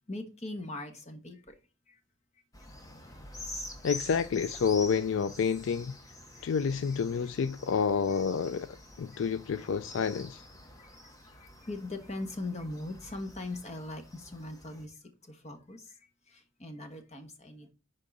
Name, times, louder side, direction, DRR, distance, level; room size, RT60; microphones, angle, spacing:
voice 1, 0.1-1.5 1.9-2.0 6.4-6.5 9.6-9.7 10.8-11.0 11.4-14.9 15.2-16.0 16.3-17.7, left 2 dB, 35° left, 1.2 m, -40 dB
sound 1, 2.5-14.9, left 2 dB, 15° left, 0.9 m, -47 dB
voice 2, 3.8-5.9 6.4-10.4, left 6 dB, 70° left, 0.4 m, -29 dB
10.5 x 3.8 x 4.0 m
head